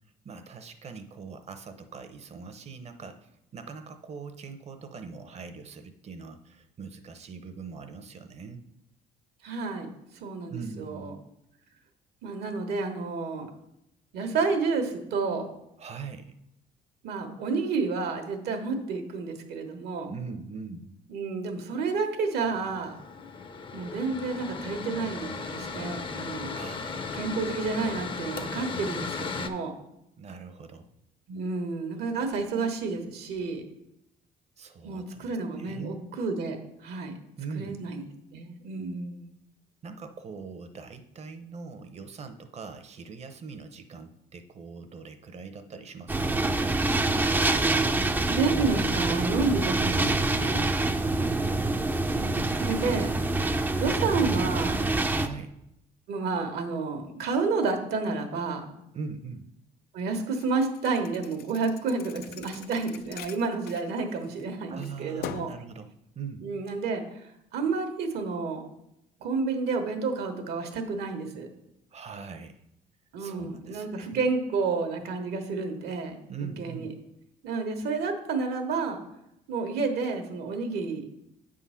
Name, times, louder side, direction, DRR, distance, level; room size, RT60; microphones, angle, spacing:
voice 1, 0.2-8.7 10.5-11.2 15.8-16.3 20.0-21.0 26.5-27.4 30.2-30.9 34.6-36.1 37.4-37.9 39.8-46.5 51.0-51.8 55.1-55.5 58.9-59.5 64.7-65.9 66.1-66.4 71.9-72.6 73.2-74.2 76.3-76.9, right 5 dB, 40° right, 8 dB, 0.7 m, -41 dB
voice 2, 9.4-9.9 10.2-11.1 12.2-13.5 14.1-15.5 17.0-20.1 21.1-23.0 23.7-26.6 27.1-29.7 31.3-33.6 34.8-37.1 37.5-38.1 38.3-39.3 48.1-50.6 52.1-53.1 53.8-54.8 56.1-58.6 59.9-65.5 66.4-67.0 67.5-68.6 69.2-71.5 73.1-76.2 76.6-76.9 77.4-79.0 79.5-81.0, right 4 dB, 75° right, 5 dB, 1.2 m, -30 dB
Mechanical fan, 22.5-29.5, left 4 dB, 30° left, 0.6 m, -36 dB
sound 1, 46.1-55.3, right 2 dB, 10° right, 0.4 m, -26 dB
Thump thud, 60.4-64.4 64.8-65.6, left 11 dB, 75° left, 0.4 m, -43 dB
7.9 x 3.8 x 5.6 m, 0.83 s
cardioid pair, 100°, 17 cm